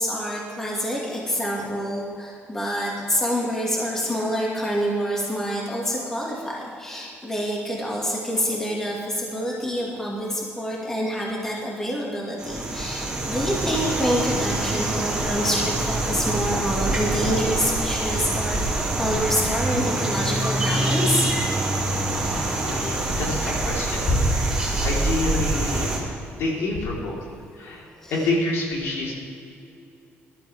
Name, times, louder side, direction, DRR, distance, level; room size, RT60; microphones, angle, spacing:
voice 1, 0.0-21.3 28.0-28.1, equal, 10° left, -4 dB, 2.1 m, -27 dB
sound 1, 12.4-26.0, right 2 dB, 15° right, 2.6 m, -25 dB
voice 2, 21.5-25.9 26.3-27.2 27.5-29.1, left 2 dB, 80° left, -4 dB, 3.9 m, -27 dB
20.0 x 12.0 x 3.6 m, 2.6 s
cardioid pair, 170°, 5 cm